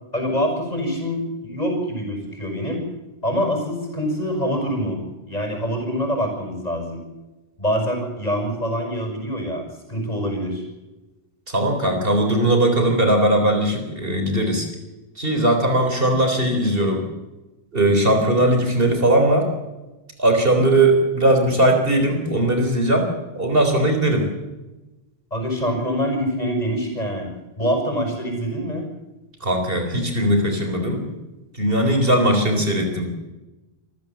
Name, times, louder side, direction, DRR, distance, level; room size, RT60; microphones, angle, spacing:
voice 1, 0.1-2.8 3.2-5.0 5.3-7.0 7.6-10.7 25.3-27.3 27.6-28.9, equal, 40° left, 3 dB, 6.2 m, -25 dB
voice 2, 11.5-14.7 15.2-17.0 17.7-19.5 20.2-23.1 23.3-24.3 29.4-31.1 31.5-33.3, right 1 dB, 65° right, 4 dB, 4.1 m, -19 dB
26.5 x 14.5 x 7.5 m, 1.1 s
omnidirectional pair, 1.0 m